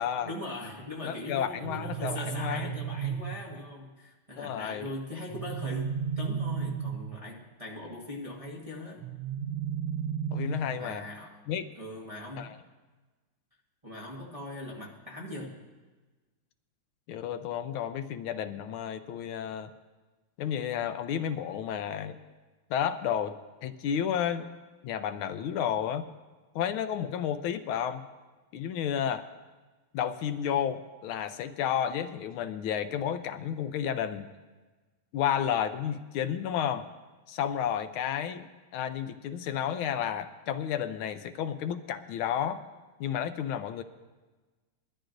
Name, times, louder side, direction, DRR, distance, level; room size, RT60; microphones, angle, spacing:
voice 1, 0.2-9.0 10.8-11.4 11.8-12.5 13.8-15.6, left 1 dB, 20° right, -4 dB, 1.1 m, -40 dB
voice 2, 1.0-2.7 4.4-4.9 10.3-11.1 11.5-11.6 12.3-12.6 17.1-19.7 20.4-22.2 22.7-23.4 23.6-24.5 24.8-26.1 26.5-28.0 28.5-29.3 29.9-34.3 35.1-36.8 37.3-42.6 43.0-43.8, left 9 dB, 75° left, 10 dB, 1.4 m, -31 dB
sound 1, 1.6-3.6 5.3-7.3 9.0-11.0, right 8 dB, 70° right, 1.2 m, -34 dB
21.0 x 12.5 x 2.6 m, 1.3 s
omnidirectional pair, 2.4 m